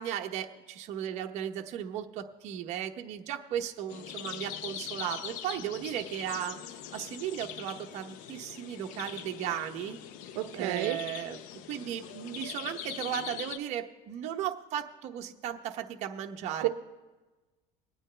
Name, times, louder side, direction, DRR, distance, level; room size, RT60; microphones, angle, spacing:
voice 1, 0.0-6.6 6.9-10.0 10.6-11.4 11.7-16.7, right 10 dB, 50° right, 4 dB, 0.9 m, -36 dB
sound 1, 3.9-13.6, left 10 dB, 60° left, 0.6 m, -42 dB
voice 2, 10.4-11.0 16.6-16.7, right 15 dB, 85° right, 9 dB, 0.7 m, -30 dB
22.5 x 9.0 x 3.3 m, 1.2 s
cardioid pair, 155°, 15 cm